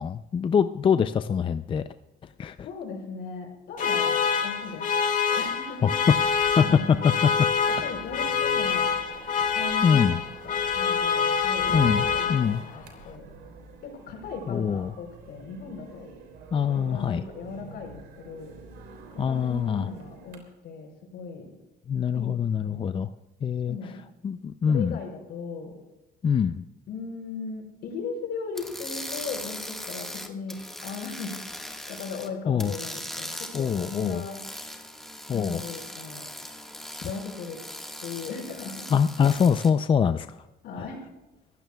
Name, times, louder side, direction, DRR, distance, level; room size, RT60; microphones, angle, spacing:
voice 1, 0.0-1.8 2.4-2.6 5.8-5.9 6.6-7.3 9.8-10.2 11.7-12.6 14.5-14.9 16.5-17.2 19.2-19.9 21.9-23.1 23.4-23.9 24.2-25.0 26.2-26.6 32.5-32.7 33.5-34.3 35.3-35.6 38.9-40.4, left 7 dB, 30° left, 11 dB, 0.4 m, -24 dB
voice 2, 2.6-4.9 5.4-5.9 6.5-7.2 7.7-8.9 9.5-10.0 10.4-13.3 13.8-16.1 16.7-18.5 19.1-21.5 22.1-22.9 23.7-24.0 24.7-25.8 26.9-31.3 31.9-34.4 35.3-36.3 37.0-37.6 38.0-38.9 40.6-41.0, left 5 dB, 70° left, 1 dB, 5.4 m, -38 dB
sound 1, 3.8-12.8, left 6 dB, 50° left, 2.0 m, -26 dB
sound 2, 6.0-20.4, right 4 dB, 80° right, 3.2 m, -46 dB
sound 3, 28.5-32.3 32.6-39.7, left 1 dB, ahead, 1.6 m, -39 dB
24.5 x 15.0 x 2.3 m, 1.1 s
cardioid pair, 110°, 17 cm